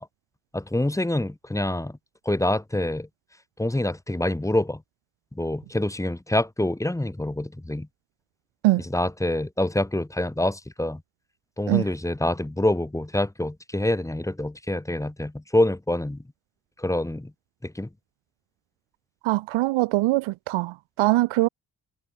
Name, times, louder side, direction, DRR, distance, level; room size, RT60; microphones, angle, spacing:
voice 1, 0.5-2.0 2.2-3.1 3.6-4.8 5.3-7.9 8.8-11.0 11.6-16.2 16.8-17.3 17.6-17.9, left 1 dB, 5° left, 0.9 m, -26 dB
voice 2, 19.2-21.5, right 18 dB, 70° right, 0.7 m, -22 dB
supercardioid pair, 50°, 49 cm